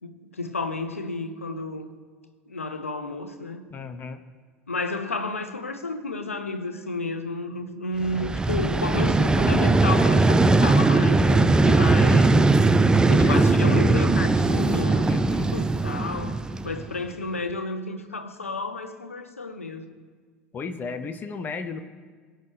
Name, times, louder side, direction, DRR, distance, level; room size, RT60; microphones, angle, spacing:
voice 1, 0.0-1.9 2.5-3.6 4.7-12.5 13.1-15.1 15.5-19.9, left 3 dB, 80° left, 1.0 m, -31 dB
voice 2, 3.7-4.2 13.2-13.4 13.6-14.2 15.0-15.5 20.5-21.8, left 5 dB, 25° left, 0.8 m, -34 dB
Vehicle, 8.0-17.0, right 3 dB, 10° right, 0.6 m, -19 dB
21.5 x 8.9 x 3.4 m
figure-of-eight pair, 70°, 7 cm